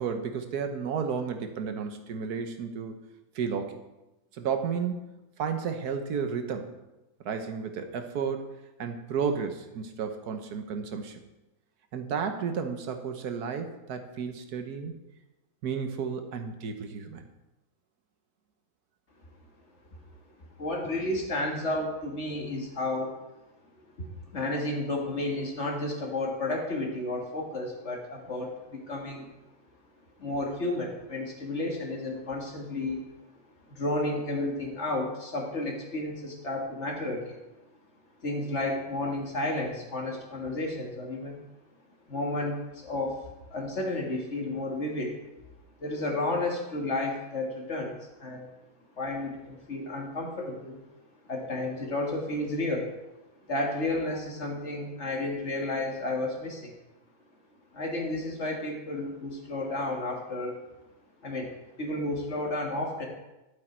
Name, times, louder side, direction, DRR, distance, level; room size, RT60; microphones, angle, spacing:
voice 1, 0.0-2.9 3.3-3.8 4.3-6.7 7.2-8.4 8.8-11.2 11.9-14.9 15.6-17.2, right 6 dB, 90° right, 6 dB, 1.5 m, -32 dB
voice 2, 20.6-23.1 24.0-24.1 24.3-29.3 30.2-33.0 33.7-37.4 38.2-41.4 42.1-43.2 43.5-45.2 45.8-48.5 49.0-50.8 51.3-52.9 53.5-56.7 57.7-60.6 61.2-61.5 61.8-63.0, left 2 dB, 50° left, 0 dB, 2.0 m, -32 dB
11.0 x 8.2 x 4.4 m, 1.0 s
omnidirectional pair, 1.6 m